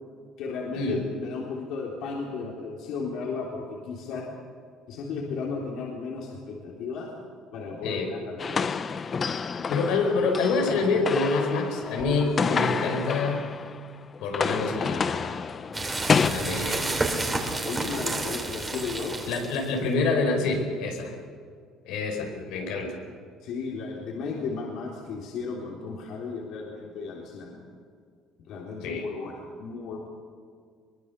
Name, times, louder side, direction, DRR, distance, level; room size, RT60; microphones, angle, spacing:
voice 1, 0.4-4.2 4.9-7.1 7.5-8.9 17.6-19.2 23.4-27.6 28.5-30.1, left 4 dB, 65° left, -2 dB, 3.8 m, -34 dB
sound 1, 8.4-13.9 14.1-16.3, left 5 dB, 30° left, 0.7 m, -29 dB
voice 2, 9.5-13.5 14.2-15.3 16.2-16.9 19.3-21.1 21.8-23.0 28.8-29.0, left 3 dB, 80° left, 2 dB, 4.9 m, -27 dB
sound 2, 15.7-19.8, right 2 dB, 15° right, 3.1 m, -30 dB
23.0 x 21.5 x 7.0 m, 2.1 s
cardioid pair, 145°, 0 cm